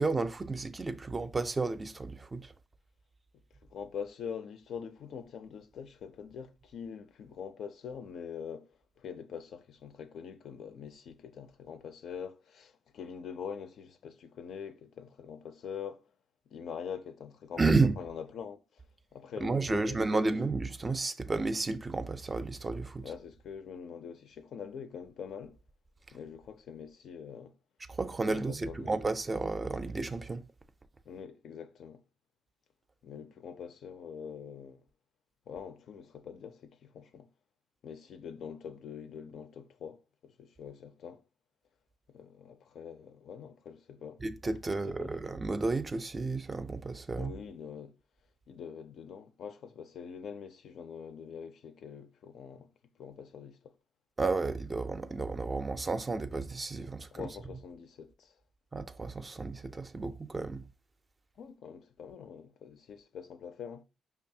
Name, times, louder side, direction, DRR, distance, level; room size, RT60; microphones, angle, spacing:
voice 1, 0.0-2.5 17.6-18.0 19.4-23.1 27.9-30.4 44.2-47.3 54.2-57.3 58.7-60.6, right 3 dB, 25° right, 0.4 m, -32 dB
voice 2, 3.6-16.0 16.5-18.8 19.1-20.3 23.0-25.6 26.1-27.5 28.2-28.9 31.1-32.0 33.0-34.8 35.5-37.3 37.8-41.2 42.1-44.2 44.7-45.2 47.1-47.9 48.5-52.7 53.0-53.7 57.1-58.3 61.4-63.8, left 7 dB, 65° left, 0.4 m, -44 dB
5.1 x 2.3 x 2.7 m
cardioid pair, 90°, 0 cm